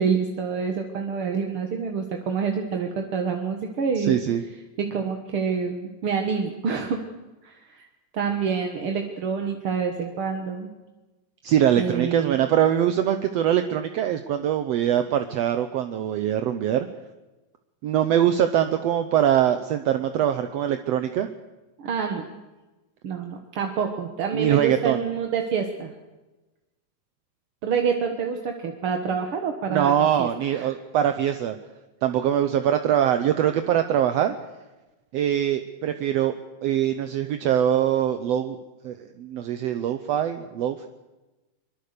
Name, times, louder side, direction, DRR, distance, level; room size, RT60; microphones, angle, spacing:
voice 1, 0.0-4.2 4.9-7.0 7.4-7.9 8.1-10.7 11.8-12.4 21.8-22.3 23.0-25.9 27.6-30.7, right 6 dB, 50° right, 4 dB, 1.9 m, -27 dB
voice 2, 4.0-4.4 11.4-16.9 17.8-21.3 24.3-25.0 29.7-31.6 32.0-34.3 35.1-36.3 36.6-38.6 38.8-40.9, right 10 dB, 70° right, 8 dB, 1.6 m, -23 dB
23.5 x 22.5 x 6.8 m, 1.1 s
omnidirectional pair, 3.9 m